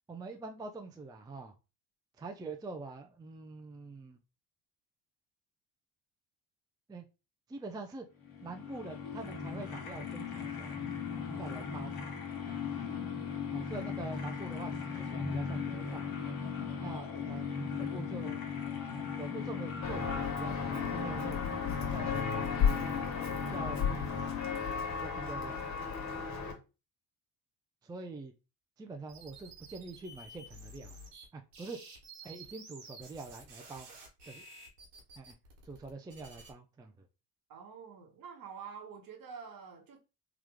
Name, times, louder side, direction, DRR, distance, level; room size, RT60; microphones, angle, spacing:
voice 1, 0.1-1.6 2.2-4.2 6.9-7.0 7.5-8.1 8.4-10.8 11.1-12.0 12.5-12.6 13.5-16.1 16.8-18.4 19.2-21.4 21.8-22.5 22.9-23.1 23.5-24.4 25.0-25.6 27.8-28.3 28.8-31.0 31.3-31.8 32.2-33.9 34.3-34.4 35.2-35.4 35.7-37.1, right 3 dB, 10° right, 0.4 m, -45 dB
sound 1, 8.2-24.9, left 6 dB, 55° left, 1.3 m, -38 dB
Walk footsteps, 19.8-26.5, left 6 dB, 40° left, 1.4 m, -34 dB
sound 2, 29.1-31.2 31.5-36.5, right 2 dB, 85° right, 1.4 m, -52 dB
voice 2, 37.5-40.0, right 6 dB, 50° right, 1.2 m, -47 dB
3.1 x 2.4 x 3.5 m
supercardioid pair, 75°, 44 cm